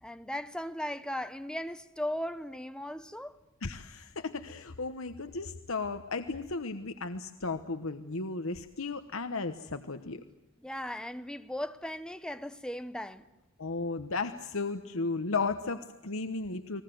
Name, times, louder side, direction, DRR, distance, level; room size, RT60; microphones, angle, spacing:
voice 1, 0.0-3.4 10.6-13.2, left 1 dB, 5° left, 0.9 m, -37 dB
voice 2, 3.6-10.2 13.6-16.8, left 3 dB, 65° left, 1.1 m, -35 dB
30.0 x 21.0 x 7.8 m
head